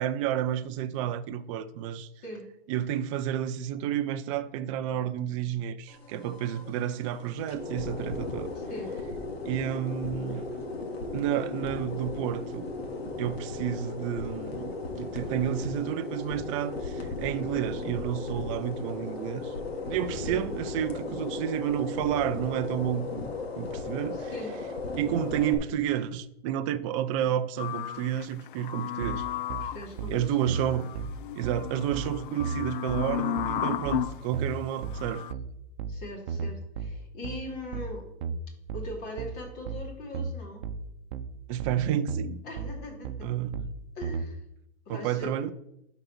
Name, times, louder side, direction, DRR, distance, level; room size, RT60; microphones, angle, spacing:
voice 1, 0.0-2.1 2.7-8.5 9.5-10.5 11.1-12.7 13.2-19.5 19.8-23.3 23.6-24.3 25.0-29.3 30.1-30.9 31.4-35.2 41.5-42.4 43.2-43.6 44.9-45.5, right 10 dB, 30° right, 0.5 m, -30 dB
sound 1, 5.9-25.6, left 3 dB, 75° left, 2.1 m, -36 dB
voice 2, 8.5-8.9 20.3-20.5 24.1-24.6 29.6-30.6 35.9-38.1 38.7-40.7 42.4-43.4 43.9-44.4 44.9-45.3, left 1 dB, 35° left, 2.7 m, -40 dB
sound 2, 27.6-34.2 34.9-35.3, left 12 dB, 55° left, 0.5 m, -34 dB
sound 3, 29.0-44.3, right 5 dB, 50° right, 0.8 m, -35 dB
11.0 x 4.0 x 5.9 m
hypercardioid pair, 130°, 31 cm